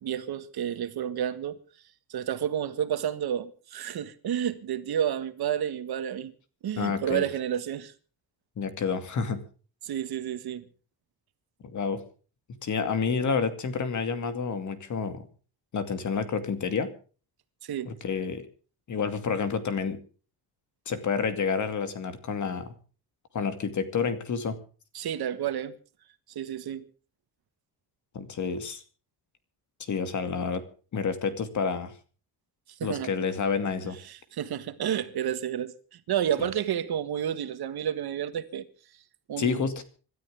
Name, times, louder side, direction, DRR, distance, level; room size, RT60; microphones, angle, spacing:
voice 1, 0.0-1.6 2.1-6.3 6.6-7.9 9.8-10.6 17.6-17.9 24.9-25.7 26.3-26.8 32.8-33.1 34.1-38.7 39.3-39.6, right 9 dB, 65° right, 1.7 m, -30 dB
voice 2, 6.8-7.2 8.6-9.4 11.6-12.0 12.6-15.3 15.7-16.9 17.9-18.4 18.9-20.0 20.9-22.7 23.3-24.5 28.1-28.8 29.8-30.6 30.9-31.9 32.8-34.0 36.4-36.5 39.4-39.8, left 5 dB, 45° left, 2.4 m, -29 dB
26.5 x 12.5 x 3.6 m
cardioid pair, 165°, 41 cm